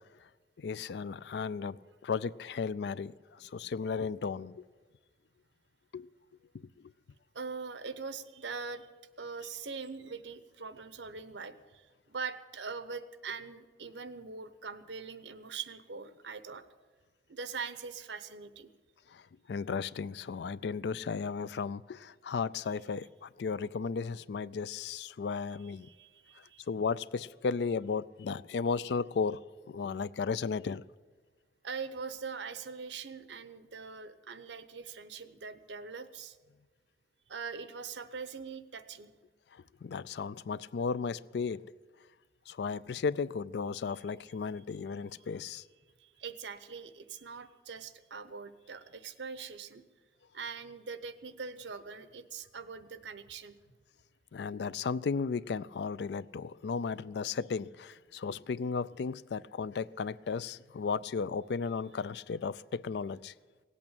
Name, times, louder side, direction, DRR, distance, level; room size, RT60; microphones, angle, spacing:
voice 1, 0.6-4.6 5.9-6.1 6.5-6.7 19.1-19.2 19.5-25.9 26.7-29.4 29.7-30.8 39.5-41.6 42.5-45.6 54.3-63.3, left 5 dB, 75° left, 19 dB, 0.4 m, -35 dB
voice 2, 7.3-8.9 9.2-16.6 17.3-18.7 25.8-26.7 31.6-36.4 37.3-39.1 43.9-44.0 46.0-49.8 50.3-53.6, right 5 dB, 85° right, 12 dB, 0.9 m, -42 dB
17.5 x 8.5 x 8.8 m, 1.4 s
head